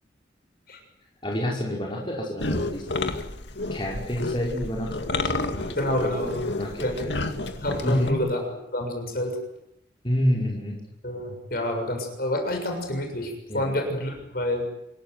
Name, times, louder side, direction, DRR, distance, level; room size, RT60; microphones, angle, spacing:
voice 1, 1.2-3.0 3.7-6.3 6.6-7.1 7.8-8.2 10.0-10.8 13.5-13.7, equal, 30° left, -2 dB, 5.6 m, -28 dB
sound 1, 2.4-8.1, left 2 dB, 75° left, 2.1 m, -30 dB
voice 2, 5.8-6.4 6.8-8.4 8.7-9.3 11.0-14.6, left 1 dB, 55° left, 4 dB, 6.8 m, -28 dB
27.0 x 17.0 x 9.6 m, 0.81 s
head